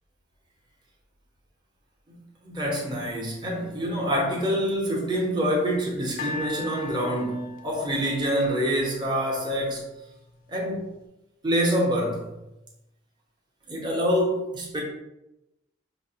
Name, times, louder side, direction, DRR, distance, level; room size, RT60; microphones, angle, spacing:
voice 1, 2.4-9.8 10.5-10.8 11.4-12.2 13.7-14.8, equal, 25° right, -3 dB, 0.8 m, -26 dB
sound 1, 6.2-9.4 10.1-10.2, left 4 dB, 40° left, 0.4 m, -39 dB
5.5 x 2.0 x 2.8 m, 0.93 s
head